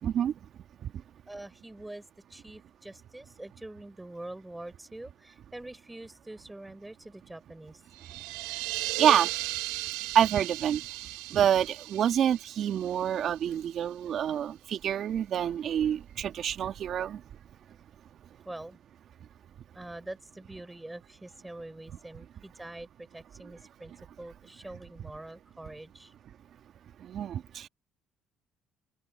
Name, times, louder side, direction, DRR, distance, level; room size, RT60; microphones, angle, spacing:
voice 1, 0.0-0.3 9.0-9.3 10.1-10.8 11.3-17.2 27.0-27.7, right 9 dB, 60° right, 2.1 m, -27 dB
voice 2, 1.3-2.0 2.3-7.8 18.4-18.8 19.7-23.9 24.2-26.1, right 1 dB, 10° right, 5.9 m, -44 dB
sound 1, 7.9-13.6, right 20 dB, 85° right, 1.6 m, -36 dB
open air
supercardioid pair, 70°, 0 cm